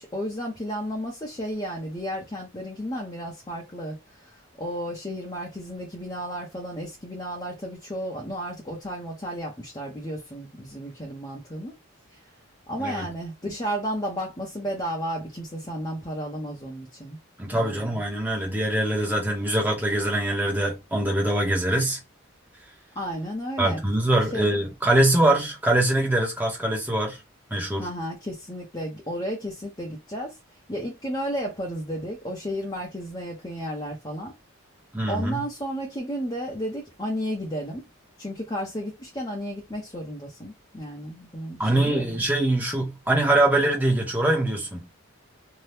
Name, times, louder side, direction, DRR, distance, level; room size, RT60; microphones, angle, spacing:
voice 1, 0.0-11.7 12.7-17.2 17.5-18.0 23.0-23.8 24.3-24.5 27.8-30.4 30.7-34.3 35.1-37.9 38.2-42.0, equal, 20° left, 0.8 m, -33 dB
voice 2, 12.8-13.1 17.4-22.0 23.6-27.2 27.5-27.9 34.9-35.4 41.6-44.9, right 1 dB, 10° right, 1.0 m, -23 dB
2.8 x 2.3 x 3.3 m
head